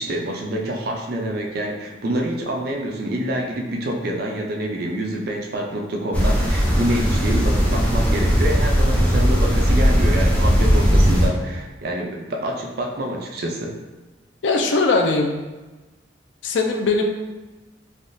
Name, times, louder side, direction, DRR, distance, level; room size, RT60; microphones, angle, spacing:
voice 1, 0.0-13.8, right 1 dB, 55° right, 0 dB, 0.4 m, -27 dB
sound 1, 6.1-11.3, equal, 10° left, 0.5 m, -18 dB
voice 2, 14.4-15.3 16.4-17.1, left 3 dB, 75° left, 3 dB, 0.4 m, -20 dB
3.4 x 2.3 x 2.6 m, 1.2 s
head